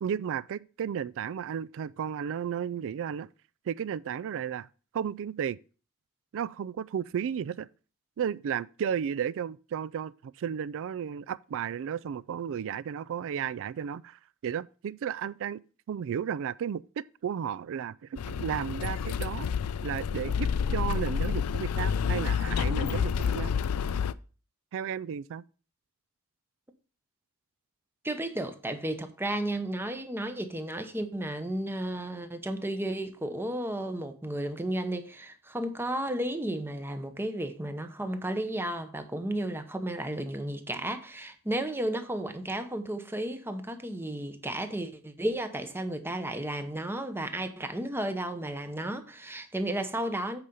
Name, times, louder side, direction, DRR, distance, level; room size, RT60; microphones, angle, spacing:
voice 1, 0.0-3.3 3.7-4.7 4.9-5.6 6.3-7.7 8.2-15.6 15.9-19.5 19.8-23.5 24.7-25.4, right 8 dB, 60° right, 0.3 m, -33 dB
sound 1, 18.2-24.1, left 7 dB, 90° left, 0.4 m, -29 dB
voice 2, 28.0-50.4, right 1 dB, 10° right, 0.8 m, -33 dB
8.2 x 5.0 x 5.3 m
head